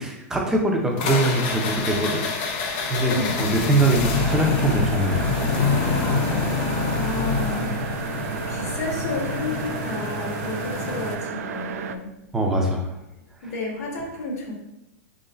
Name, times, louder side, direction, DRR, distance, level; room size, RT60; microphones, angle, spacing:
voice 1, 0.0-2.2 2.6-5.3 12.3-12.8 13.4-13.5, right 1 dB, 5° right, 0 dB, 0.5 m, -23 dB
sound 1, 1.0-11.2, left 4 dB, 40° left, 0.6 m, -26 dB
voice 2, 3.1-3.7 6.9-7.7 8.5-12.1 13.4-14.5, left 2 dB, 70° left, -1 dB, 1.5 m, -31 dB
sound 2, 4.1-12.0, right 7 dB, 70° right, 0.4 m, -33 dB
3.8 x 3.1 x 4.2 m, 0.89 s
supercardioid pair, 165°, 8 cm